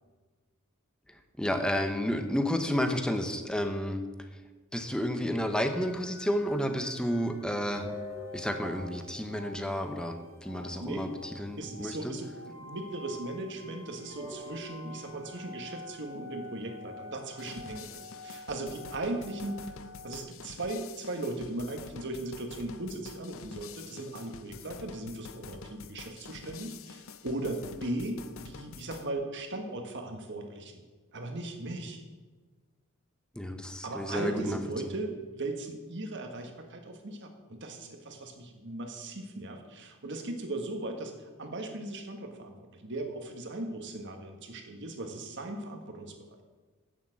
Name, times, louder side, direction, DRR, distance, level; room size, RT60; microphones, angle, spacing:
voice 1, 1.4-4.0 4.7-7.9 8.3-12.1 33.3-34.6, equal, 5° left, 6 dB, 0.8 m, -31 dB
sound 1, 5.5-20.2, left 2 dB, 10° right, 2.1 m, -47 dB
voice 2, 11.6-19.6 20.0-30.8 31.1-32.0 33.8-41.1 41.4-46.1, right 2 dB, 55° right, 4 dB, 1.6 m, -38 dB
sound 2, 17.4-29.1, left 6 dB, 65° left, 0.6 m, -48 dB
8.8 x 7.3 x 7.4 m, 1.3 s
head